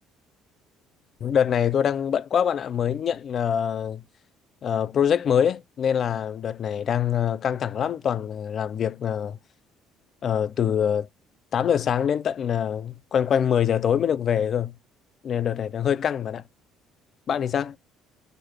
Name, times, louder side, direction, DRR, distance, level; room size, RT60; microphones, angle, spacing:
voice 1, 1.2-4.0 4.6-9.4 10.2-11.1 11.5-14.8 15.2-16.4 17.3-17.8, left 8 dB, 45° left, 0.4 m, -24 dB
6.7 x 3.1 x 2.3 m
cardioid pair, 120°, 0 cm